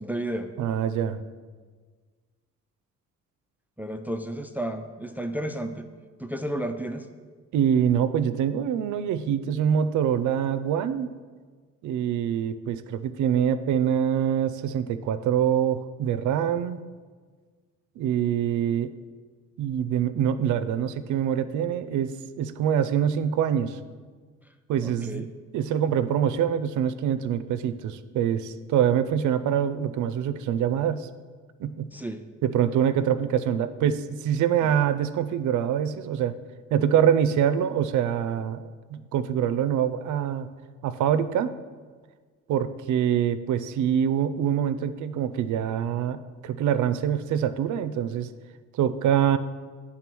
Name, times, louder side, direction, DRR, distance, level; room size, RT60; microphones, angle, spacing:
voice 1, 0.0-0.5 3.8-5.9 6.2-7.1 24.8-25.3 31.9-32.2 34.6-34.8, right 1 dB, 5° right, 7 dB, 0.4 m, -32 dB
voice 2, 0.6-1.2 7.5-11.1 11.8-16.8 18.0-18.9 19.6-23.8 24.7-25.3 25.5-31.1 31.6-31.9 32.4-36.4 36.7-40.5 40.8-41.6 42.5-48.3 48.7-49.4, right 9 dB, 75° right, 12 dB, 0.5 m, -25 dB
9.0 x 3.7 x 6.1 m, 1.5 s
cardioid pair, 90°, 30 cm